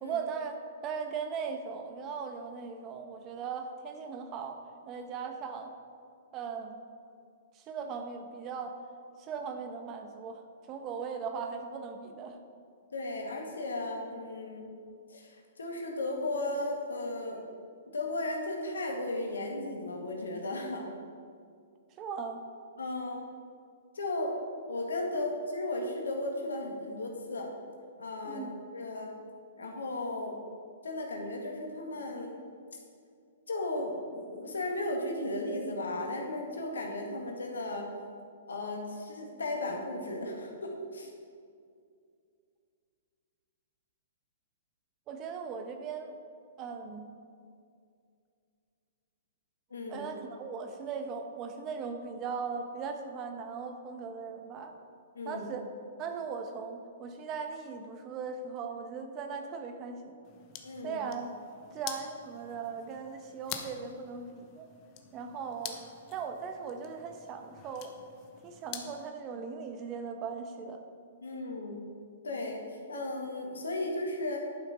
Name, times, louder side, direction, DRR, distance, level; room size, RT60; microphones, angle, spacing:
voice 1, 0.0-0.6 0.8-4.6 4.9-5.7 6.3-6.8 7.5-8.8 9.2-12.4 22.0-22.4 25.1-25.3 28.2-28.5 45.1-46.1 46.6-47.1 49.9-54.7 55.2-55.7 56.0-60.2 60.8-61.3 61.7-64.7 65.1-65.8 66.1-67.9 68.4-70.8, right 6 dB, 30° right, 6 dB, 1.0 m, -38 dB
voice 2, 12.9-14.7 15.1-17.4 17.9-20.9 22.8-23.2 24.0-24.3 24.7-27.5 28.0-28.5 28.7-29.1 29.6-30.4 30.8-32.4 33.5-37.9 38.5-41.1 49.7-50.1 55.1-55.4 60.6-61.0 71.2-71.8 72.2-72.6 72.9-74.4, left 2 dB, 85° left, 1 dB, 1.8 m, -35 dB
sound 1, 60.2-69.1, left 9 dB, 35° left, 0.9 m, -47 dB
11.0 x 5.7 x 5.0 m, 2.3 s
hypercardioid pair, 125°, 0 cm